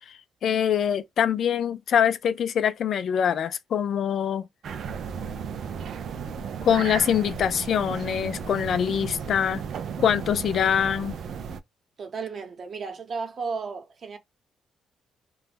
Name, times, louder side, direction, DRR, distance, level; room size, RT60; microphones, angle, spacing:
voice 1, 0.1-4.5 6.6-9.6 10.0-11.1, left 8 dB, 65° left, 0.3 m, -24 dB
sound 1, 4.6-11.6, right 6 dB, 65° right, 0.4 m, -34 dB
voice 2, 12.0-14.2, right 5 dB, 50° right, 0.9 m, -34 dB
2.2 x 2.1 x 3.2 m
cardioid pair, 85°, 0 cm